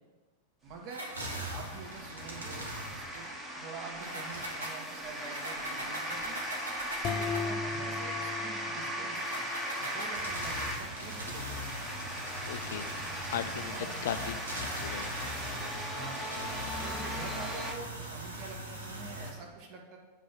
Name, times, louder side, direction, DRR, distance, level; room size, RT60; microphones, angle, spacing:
voice 1, 0.6-1.1 1.5-3.3 3.6-6.4 7.1-9.5 9.8-11.7 13.7-14.4 15.9-16.2 16.7-20.0, right 4 dB, 40° right, 0 dB, 1.9 m, -46 dB
sound 1, 0.7-17.7, equal, 15° right, 1.5 m, -38 dB
sound 2, 0.9-3.3 4.0-7.6 9.1-19.3, equal, 80° right, 1.6 m, -41 dB
sound 3, 7.0-9.8, left 5 dB, 35° left, 0.8 m, -37 dB
voice 2, 12.5-12.9 13.3-13.7 14.0-15.1, left 9 dB, 60° left, 11 dB, 0.4 m, -37 dB
8.2 x 5.4 x 6.2 m, 1.2 s
figure-of-eight pair, 90°, 0 cm